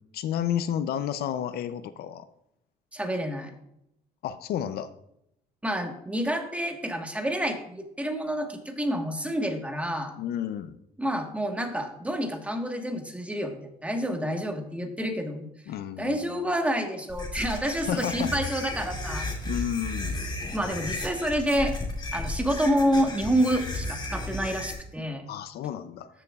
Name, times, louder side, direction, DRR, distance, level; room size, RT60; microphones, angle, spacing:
voice 1, 0.1-2.3 4.2-4.9 10.2-10.8 15.7-16.5 17.9-18.3 19.4-20.2 25.3-26.1, left 10 dB, 70° left, 12 dB, 0.5 m, -31 dB
voice 2, 2.9-3.5 5.6-10.1 11.0-15.5 16.0-19.3 20.5-21.7 22.1-25.3, equal, 10° right, 4 dB, 1.4 m, -28 dB
sound 1, 17.1-24.7, left 2 dB, 25° left, 2.5 m, -34 dB
13.5 x 6.9 x 2.4 m, 0.78 s
cardioid pair, 110°, 17 cm